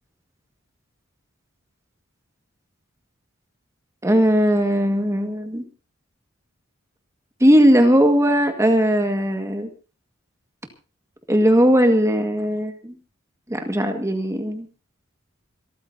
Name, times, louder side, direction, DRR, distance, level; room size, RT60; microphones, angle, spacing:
voice 1, 4.0-5.6 7.4-9.7 11.3-12.9 13.5-14.7, equal, 15° right, 4 dB, 1.9 m, -18 dB
27.0 x 13.5 x 2.8 m, 0.33 s
head